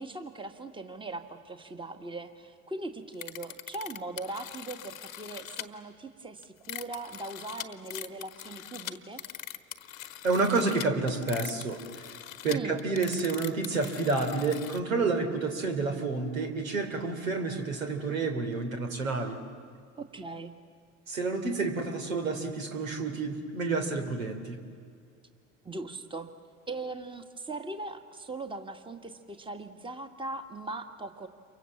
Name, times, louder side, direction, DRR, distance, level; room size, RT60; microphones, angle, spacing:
voice 1, 0.0-9.2 12.5-12.8 20.0-20.5 25.7-26.3 26.7-31.3, right 2 dB, 15° right, 7 dB, 1.8 m, -40 dB
sound 1, 3.1-5.7 6.4-14.8, left 12 dB, 85° left, 1.2 m, -42 dB
voice 2, 10.2-12.1 12.4-19.4 21.1-24.6, right 3 dB, 85° right, 5 dB, 3.2 m, -29 dB
28.5 x 24.0 x 7.3 m, 2.2 s
hypercardioid pair, 80°, 39 cm